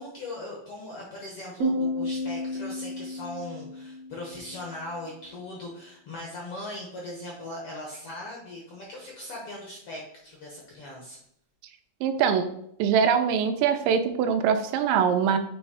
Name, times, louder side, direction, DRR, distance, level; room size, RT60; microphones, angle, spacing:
voice 1, 0.0-11.2, left 1 dB, 65° left, -2 dB, 1.4 m, -39 dB
Piano, 1.6-5.0, left 1 dB, 65° right, 1.7 m, -32 dB
voice 2, 12.0-12.5 12.8-15.4, right 7 dB, 85° right, 8 dB, 2.3 m, -23 dB
7.0 x 3.1 x 4.8 m, 0.72 s
omnidirectional pair, 3.9 m